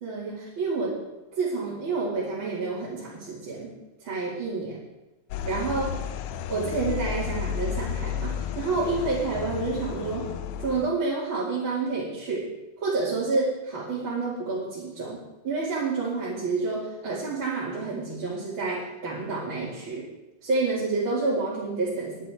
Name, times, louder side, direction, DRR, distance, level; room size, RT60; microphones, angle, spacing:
voice 1, 0.0-0.9 1.3-3.7 4.0-4.8 5.4-6.0 6.5-10.3 10.6-12.4 12.8-20.0 20.4-22.2, right 3 dB, 40° right, -8 dB, 3.2 m, -29 dB
sound 1, 5.3-10.9, left 8 dB, 90° left, 2.1 m, -32 dB
21.0 x 8.8 x 3.6 m, 1.0 s
omnidirectional pair, 3.4 m